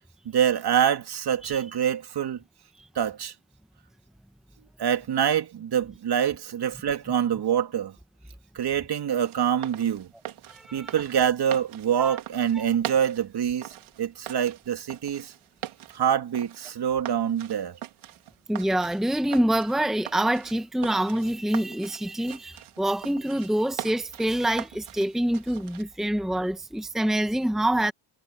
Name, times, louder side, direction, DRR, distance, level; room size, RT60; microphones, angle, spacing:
voice 1, 0.2-2.4 2.9-3.3 4.8-7.9 8.5-10.1 10.7-15.3 15.9-17.8, right 9 dB, 50° right, 2.8 m, -25 dB
sound 1, 9.2-25.8, right 13 dB, 75° right, 3.1 m, -42 dB
voice 2, 10.5-10.9 12.0-12.2 12.5-12.7 18.5-27.9, right 1 dB, ahead, 1.2 m, -26 dB
cardioid pair, 100°, 50 cm